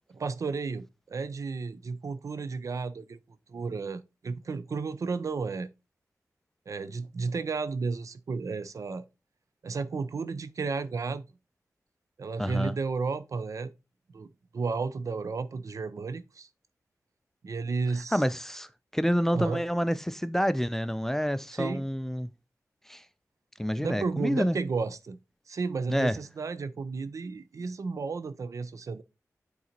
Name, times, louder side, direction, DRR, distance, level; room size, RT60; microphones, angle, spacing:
voice 1, 0.2-3.2 3.5-5.7 6.7-9.1 9.6-11.2 12.2-13.7 14.1-16.5 17.4-18.2 19.3-19.6 21.5-21.8 23.8-25.2 25.5-29.0, right 4 dB, 65° right, 0.5 m, -33 dB
voice 2, 12.4-12.7 18.1-22.3 22.9-23.0 23.6-24.6 25.9-26.1, equal, 5° left, 0.4 m, -28 dB
8.4 x 4.0 x 2.9 m
cardioid pair, 60°, 6 cm